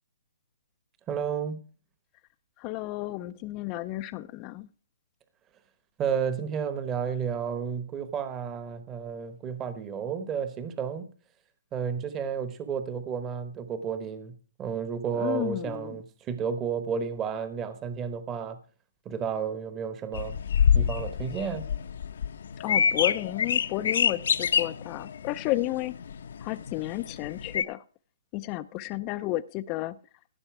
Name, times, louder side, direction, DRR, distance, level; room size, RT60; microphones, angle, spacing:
voice 1, 1.1-1.6 6.0-11.1 11.7-14.3 14.6-18.6 19.0-20.4 20.7-21.7, right 7 dB, 20° right, 1.0 m, -32 dB
voice 2, 2.6-4.7 15.1-16.0 22.6-25.9 26.4-27.8 28.3-30.0, left 17 dB, 25° left, 0.4 m, -32 dB
sound 1, 20.1-27.6, left 7 dB, 65° left, 0.8 m, -27 dB
15.5 x 6.7 x 4.7 m
hypercardioid pair, 150°, 0 cm